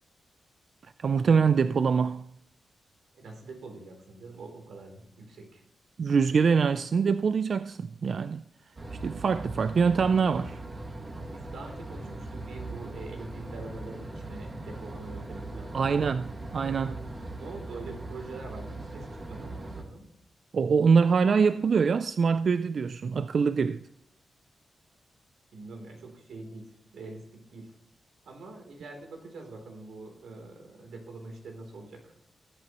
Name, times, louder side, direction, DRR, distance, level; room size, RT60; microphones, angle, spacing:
voice 1, 1.0-2.2 6.0-8.4 9.0-10.6 15.7-17.0 20.5-23.8, right 5 dB, 50° right, 0.3 m, -24 dB
voice 2, 3.1-5.6 6.3-6.5 11.3-16.0 17.2-20.1 25.5-27.7 28.2-32.1, right 3 dB, 90° right, 3.3 m, -44 dB
sound 1, 8.8-19.8, right 2 dB, 30° right, 1.9 m, -40 dB
19.5 x 8.5 x 3.0 m
wide cardioid pair, 125°, 0 cm